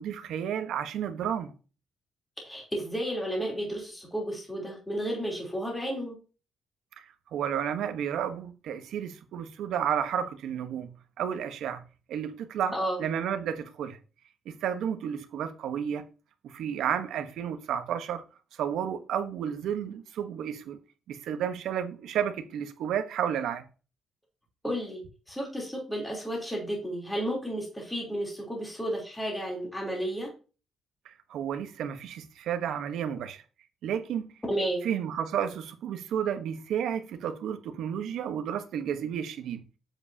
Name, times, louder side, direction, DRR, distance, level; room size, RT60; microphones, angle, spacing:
voice 1, 0.0-1.5 7.0-7.1 7.3-11.8 12.1-12.7 13.0-14.0 14.5-16.0 16.4-18.2 18.5-20.8 21.1-23.6 31.0-33.4 33.8-34.3 34.8-39.6, right 9 dB, 80° right, 1.0 m, -32 dB
voice 2, 2.4-6.2 12.7-13.0 24.6-30.3 34.5-34.9, right 1 dB, 10° left, 3.2 m, -32 dB
7.9 x 7.1 x 2.8 m
cardioid pair, 120°, 0 cm